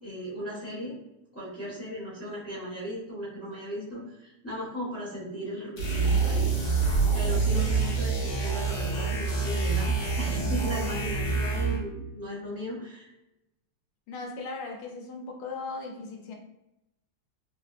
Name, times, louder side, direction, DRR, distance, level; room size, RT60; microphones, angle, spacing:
voice 1, 0.0-0.9 1.3-6.5 6.8-13.1, equal, 15° left, -9 dB, 0.6 m, -37 dB
sound 1, 5.8-11.9, right 4 dB, 55° left, 1.2 m, -26 dB
voice 2, 14.1-16.4, left 3 dB, 85° left, 1 dB, 1.6 m, -38 dB
3.4 x 2.5 x 2.4 m, 0.91 s
omnidirectional pair, 2.3 m